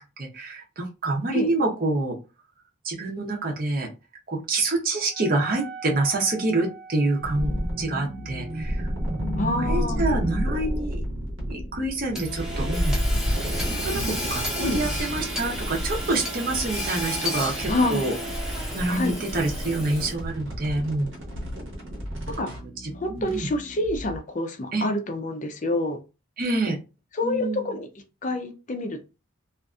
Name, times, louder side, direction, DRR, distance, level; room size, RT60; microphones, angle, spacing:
voice 1, 0.0-2.2 2.8-3.9 4.3-8.9 9.6-11.0 11.5-13.0 13.7-18.1 18.7-21.1 22.8-23.5 24.7-24.9 26.4-26.8 27.2-27.7, right 2 dB, 45° right, 1 dB, 0.7 m, -27 dB
Wind instrument woodwind instrument, 5.0-10.8, right 4 dB, 75° left, 0.8 m, -45 dB
sound 1, 7.2-24.2, equal, 70° right, 1.0 m, -31 dB
voice 2, 9.4-10.0 14.6-14.9 17.7-18.1 18.9-19.2 22.3-22.5 22.9-26.0 27.2-27.9 28.2-29.0, left 2 dB, 35° left, 5 dB, 0.5 m, -27 dB
Hammer / Sawing, 12.1-20.3, equal, 5° right, 0.7 m, -33 dB
2.6 x 2.5 x 2.3 m, 0.29 s
head